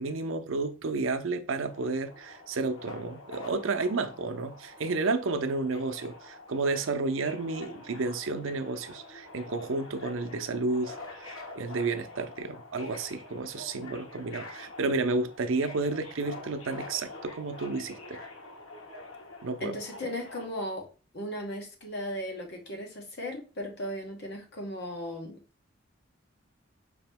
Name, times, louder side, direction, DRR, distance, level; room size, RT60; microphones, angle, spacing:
voice 1, 0.0-18.2 19.4-19.8, right 3 dB, 70° right, 0.6 m, -31 dB
Subway metro underground, 1.7-20.5, left 2 dB, 80° left, 1.3 m, -46 dB
voice 2, 19.6-20.9 21.1-25.4, equal, 55° left, 1.3 m, -36 dB
5.0 x 2.9 x 3.4 m
head